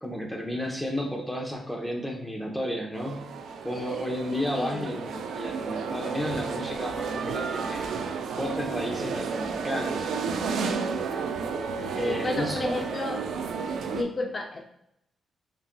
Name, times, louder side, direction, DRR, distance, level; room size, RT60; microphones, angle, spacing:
voice 1, 0.0-3.2 3.6-7.8 8.4-10.1 11.9-12.6, equal, 5° left, 0 dB, 1.0 m, -32 dB
sound 1, 2.9-14.0, right 5 dB, 85° right, 0.4 m, -32 dB
voice 2, 4.5-5.1 12.0-13.2 13.9-14.6, left 2 dB, 40° left, 2 dB, 0.5 m, -32 dB
5.4 x 2.6 x 2.3 m, 0.79 s
cardioid pair, 70°, 0 cm